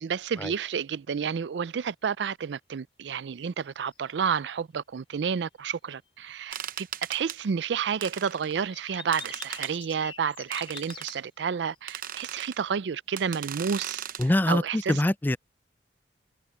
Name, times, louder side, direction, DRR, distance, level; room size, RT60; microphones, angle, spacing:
voice 1, 0.0-14.0 14.5-15.0, right 6 dB, 80° right, 0.4 m, -30 dB
sound 1, 3.6-4.1 6.2-8.0 8.7-11.8, left 6 dB, 30° left, 3.8 m, -46 dB
sound 2, 6.5-7.4 8.0-8.6 9.1-9.7 10.5-11.1 11.9-12.6 13.2-14.3, right 9 dB, 55° right, 0.8 m, -38 dB
voice 2, 14.2-15.4, left 1 dB, 10° left, 0.3 m, -24 dB
head